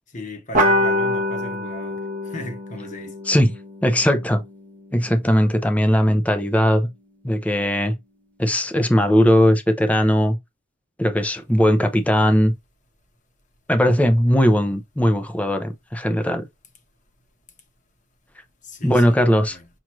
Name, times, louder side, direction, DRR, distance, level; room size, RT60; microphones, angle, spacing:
voice 1, 0.1-3.2 18.6-19.7, left 1 dB, 40° left, 1.0 m, -37 dB
sound 1, 0.5-5.5, left 1 dB, 40° right, 1.0 m, -25 dB
voice 2, 3.8-4.4 4.9-6.9 7.2-8.0 8.4-10.4 11.0-12.5 13.7-16.4 18.8-19.6, equal, 5° left, 0.5 m, -18 dB
5.9 x 2.5 x 3.0 m
head